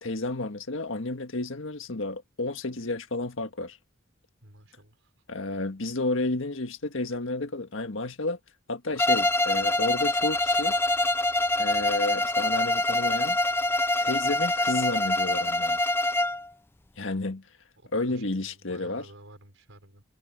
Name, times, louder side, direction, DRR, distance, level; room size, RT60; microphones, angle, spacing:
voice 1, 0.0-3.8 5.3-8.4 8.7-10.8 11.6-13.4 14.0-15.8 17.0-17.4 17.9-19.0, left 2 dB, 75° left, 1.7 m, -31 dB
voice 2, 4.4-5.2 17.8-20.0, right 1 dB, 75° right, 5.3 m, -52 dB
Bowed string instrument, 9.0-16.5, left 2 dB, 10° left, 0.5 m, -25 dB
head